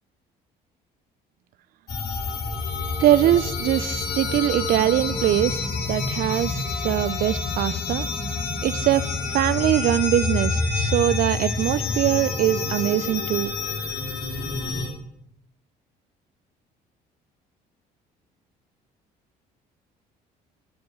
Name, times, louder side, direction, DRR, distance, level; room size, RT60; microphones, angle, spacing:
sound 1, 1.9-14.9, left 4 dB, 55° left, 2.6 m, -28 dB
voice 1, 3.0-8.1 8.6-9.1 9.3-13.5, right 13 dB, 60° right, 17 dB, 0.4 m, -22 dB
11.0 x 5.3 x 6.0 m, 0.77 s
cardioid pair, 110°, 17 cm